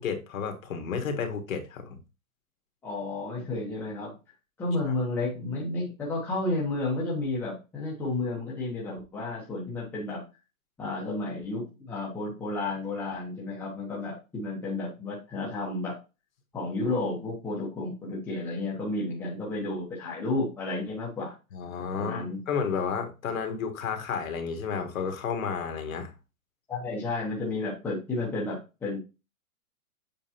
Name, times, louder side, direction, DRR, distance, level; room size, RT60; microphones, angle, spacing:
voice 1, 0.0-2.0 21.5-26.1, left 6 dB, 65° left, 1.6 m, -32 dB
voice 2, 2.8-4.1 4.6-10.2 10.8-16.0 16.5-21.3 21.9-22.4 26.7-29.0, left 2 dB, 5° left, 1.1 m, -32 dB
7.4 x 4.7 x 2.9 m
hypercardioid pair, 170°, 43 cm